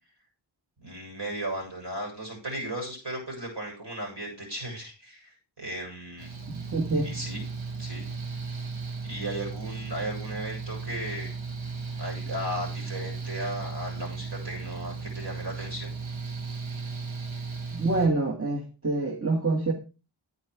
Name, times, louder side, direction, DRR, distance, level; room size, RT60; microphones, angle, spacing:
voice 1, 0.8-6.3 7.0-7.5 7.8-8.1 9.0-11.3 12.0-15.9, right 1 dB, 60° right, 0 dB, 7.1 m, -36 dB
Mechanical fan, 6.2-18.1, right 4 dB, 85° right, 1.6 m, -36 dB
voice 2, 6.5-7.1 17.7-19.7, right 3 dB, 30° right, 1 dB, 1.9 m, -26 dB
9.4 x 9.4 x 4.8 m, 0.32 s
wide cardioid pair, 45°, 46 cm